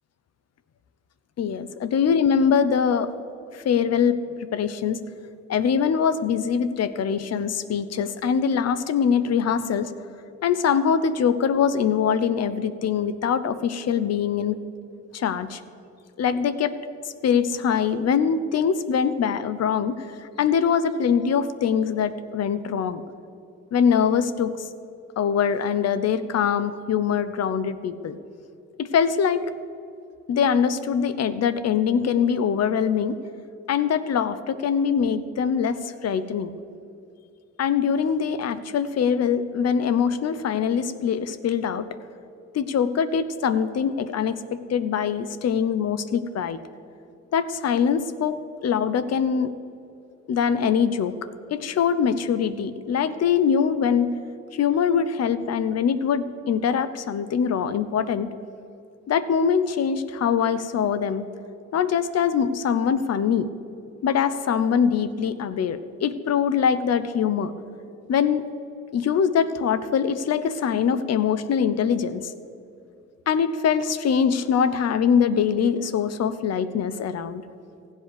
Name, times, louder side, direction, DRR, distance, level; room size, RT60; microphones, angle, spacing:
voice 1, 1.4-3.1 3.5-5.0 5.5-9.9 10.4-14.6 15.1-15.6 16.2-16.8 17.2-23.0 23.7-24.6 25.2-28.2 28.8-29.5 30.3-33.2 33.7-36.5 37.6-41.9 42.5-46.6 47.3-49.5 50.3-51.2 51.5-54.2 54.5-58.3 59.1-61.3 61.7-63.5 64.0-67.5 68.1-68.4 68.9-72.3 73.3-77.4, left 7 dB, 55° left, 14 dB, 0.8 m, -23 dB
15.5 x 8.3 x 6.6 m, 2.6 s
cardioid pair, 90°, 30 cm